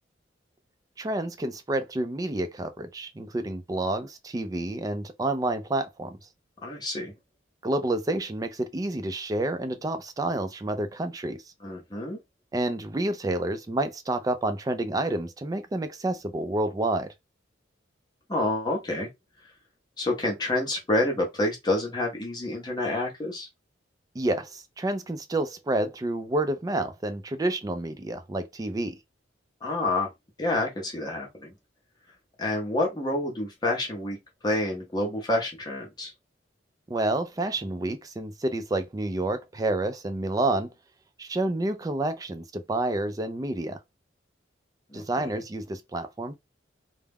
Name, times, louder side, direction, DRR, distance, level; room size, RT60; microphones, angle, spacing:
voice 1, 1.0-6.2 7.6-11.4 12.5-17.1 24.1-28.9 36.9-40.7 41.2-43.8 44.9-46.4, right 2 dB, 20° right, 0.3 m, -29 dB
voice 2, 6.6-7.1 11.6-12.2 18.3-19.1 20.0-23.5 29.6-30.1 30.4-31.5 32.4-34.2 34.4-36.1 44.9-45.4, left 1 dB, 20° left, 0.6 m, -28 dB
2.3 x 2.0 x 3.4 m
head